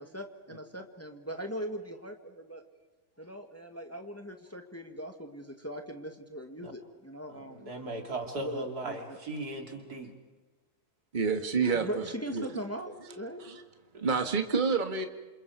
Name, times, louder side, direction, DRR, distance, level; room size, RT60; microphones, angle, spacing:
voice 1, 0.0-2.6 3.2-7.7 8.4-9.2 11.4-11.5 11.7-13.4, equal, 10° left, 4 dB, 1.8 m, -40 dB
voice 2, 7.3-10.1 13.9-14.1, right 2 dB, 85° right, 3 dB, 3.6 m, -38 dB
voice 3, 11.1-12.0 12.3-12.5 13.4-13.6 14.0-15.1, right 5 dB, 30° right, 6 dB, 1.7 m, -28 dB
28.0 x 28.0 x 4.8 m, 1.3 s
omnidirectional pair, 1.6 m